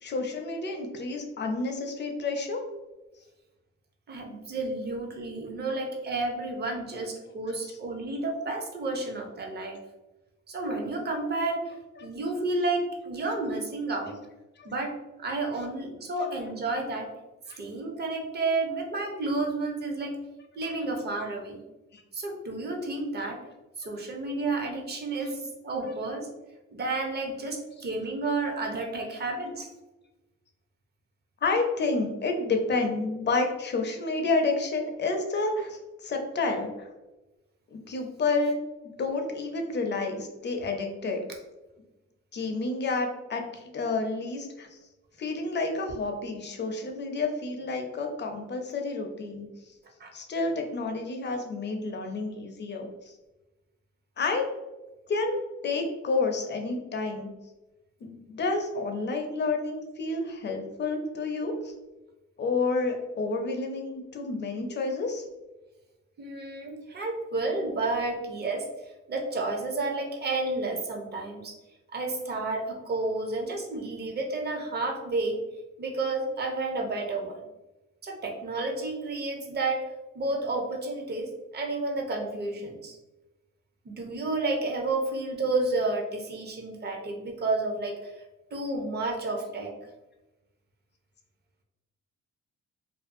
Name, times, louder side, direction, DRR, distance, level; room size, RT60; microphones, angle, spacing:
voice 1, 0.0-2.6 7.6-7.8 12.0-12.1 14.6-14.7 17.5-17.6 20.6-20.7 21.9-22.0 25.8-25.9 31.4-36.9 37.7-38.6 39.0-41.2 42.3-44.8 45.2-49.5 50.1-53.1 54.2-54.5 55.1-57.3 58.0-61.7 62.4-65.3, left 3 dB, 35° left, 3 dB, 0.5 m, -30 dB
voice 2, 4.1-9.8 10.5-11.7 12.0-14.2 14.6-17.1 17.6-20.2 20.6-21.6 22.1-23.4 23.8-26.3 26.7-29.7 50.0-50.1 66.2-71.6 71.9-75.4 75.8-77.4 78.0-79.8 80.1-83.0 83.8-88.1 88.5-89.7, right 2 dB, 35° right, 2 dB, 0.6 m, -31 dB
2.6 x 2.3 x 2.5 m, 1.1 s
cardioid pair, 90°, 30 cm